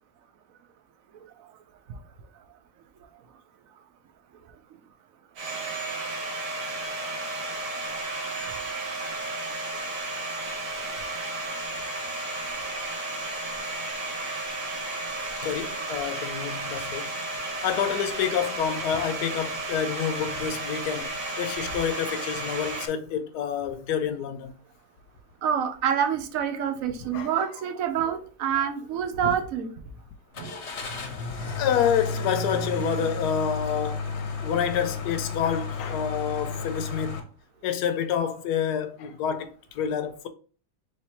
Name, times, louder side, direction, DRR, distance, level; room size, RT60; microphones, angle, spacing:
Domestic sounds home sounds, 5.4-22.9, right 2 dB, 85° right, 1.5 m, -33 dB
voice 1, 15.4-17.1 17.6-21.1 21.4-24.5 27.1-27.5 31.6-37.2 37.6-40.3, left 8 dB, 75° left, 1.1 m, -28 dB
voice 2, 25.4-29.7 30.4-30.6, right 8 dB, 65° right, 0.9 m, -27 dB
Car / Engine starting, 30.3-37.2, left 3 dB, 55° left, 0.9 m, -32 dB
3.3 x 3.1 x 4.2 m
omnidirectional pair, 1.8 m